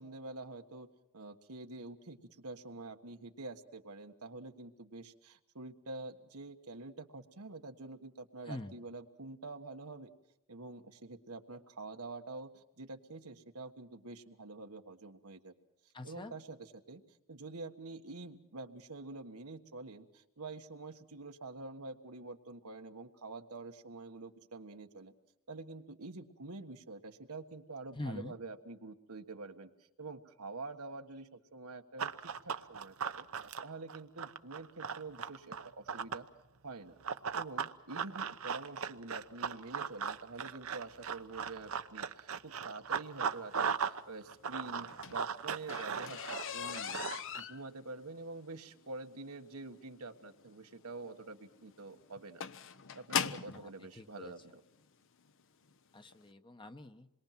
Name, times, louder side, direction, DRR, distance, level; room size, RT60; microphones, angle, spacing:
voice 1, 0.0-10.1 10.5-15.5 16.0-17.0 17.3-25.1 25.5-29.7 30.0-36.3 36.6-36.9 37.3-52.4 52.9-54.6, right 3 dB, 90° right, 6 dB, 1.5 m, -47 dB
voice 2, 8.5-8.8 15.9-16.4 27.9-28.3 53.5-54.3 55.9-57.1, left 2 dB, 20° left, 7 dB, 1.0 m, -45 dB
Run, 32.0-36.3 37.0-44.0 44.3-47.4, right 6 dB, 70° right, 0.8 m, -38 dB
sound 1, 44.7-53.6 54.5-54.6 55.2-55.4 55.7-55.8 56.1-56.2, left 7 dB, 60° left, 0.9 m, -40 dB
27.0 x 22.0 x 5.9 m, 0.86 s
head